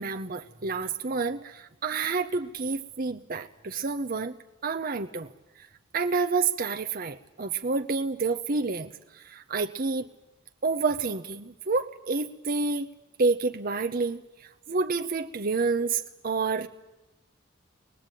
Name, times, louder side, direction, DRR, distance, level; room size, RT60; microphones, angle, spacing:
voice 1, 0.0-4.3 4.6-5.3 5.9-10.1 10.6-12.9 13.2-16.7, right 4 dB, 45° right, 7 dB, 0.8 m, -29 dB
23.5 x 21.0 x 9.1 m, 0.99 s
head